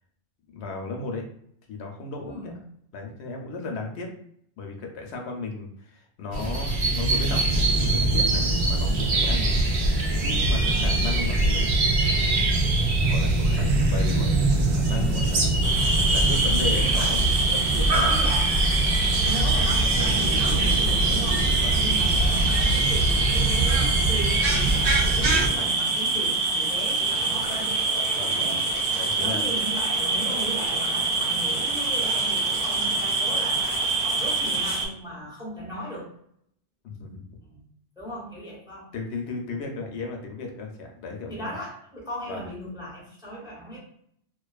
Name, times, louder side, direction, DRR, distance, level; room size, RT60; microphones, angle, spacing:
voice 1, 0.5-1.2 1.7-2.5 2.9-4.1 4.6-9.6 10.2-11.8 13.1-17.2 17.5-18.2 19.2-19.3 21.6-21.8 28.1-28.6 28.9-29.4 36.8-37.4 38.9-41.6 42.3-42.5, left 3 dB, 80° left, 2 dB, 0.8 m, -35 dB
voice 2, 2.3-2.6 9.3-9.7 10.6-11.0 16.7-17.2 18.1-18.6 19.2-27.7 29.1-36.1 37.5-37.6 38.0-38.9 39.5-39.6 41.3-43.8, equal, 5° right, -5 dB, 0.7 m, -37 dB
sound 1, 6.3-25.5, right 2 dB, 85° right, 0.9 m, -23 dB
sound 2, 15.6-34.9, right 3 dB, 65° right, 0.8 m, -25 dB
2.4 x 2.3 x 2.3 m, 0.68 s
omnidirectional pair, 1.1 m